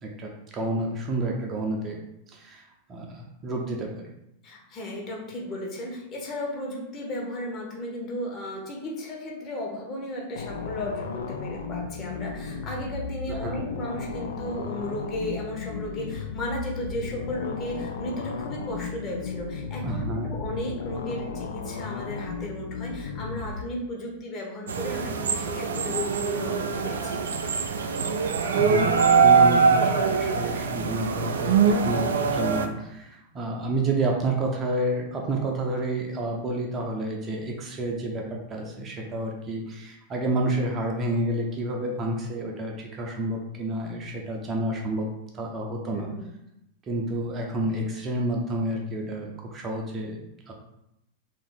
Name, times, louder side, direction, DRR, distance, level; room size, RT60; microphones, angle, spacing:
voice 1, 0.0-2.0 2.3-2.6 2.9-4.1 13.3-13.6 19.8-20.3 28.5-45.1 45.3-46.1 46.8-50.5, right 1 dB, 25° right, 0 dB, 0.6 m, -30 dB
voice 2, 4.4-27.2 45.9-46.3, left 1 dB, 30° left, -2 dB, 1.1 m, -34 dB
sound 1, 10.4-23.6, left 4 dB, 65° left, 0.5 m, -35 dB
sound 2, 24.7-32.7, right 5 dB, 65° right, 0.4 m, -23 dB
3.3 x 2.7 x 3.9 m, 0.82 s
figure-of-eight pair, 90°, 0 cm